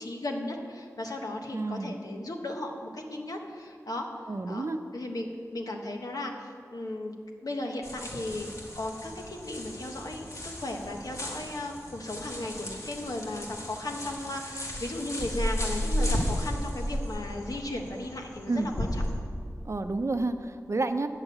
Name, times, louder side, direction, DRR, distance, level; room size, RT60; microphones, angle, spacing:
voice 1, 0.0-4.1 4.5-4.6 4.9-7.1 7.4-8.5 8.7-19.0, left 1 dB, 75° left, 2 dB, 1.3 m, -36 dB
voice 2, 1.5-1.9 4.3-4.8 18.5-18.7 19.7-21.1, right 2 dB, 50° right, 9 dB, 0.6 m, -30 dB
sound 1, 7.8-19.1, equal, 55° left, 1.9 m, -34 dB
9.8 x 7.3 x 7.9 m, 2.1 s
wide cardioid pair, 70°, 6 cm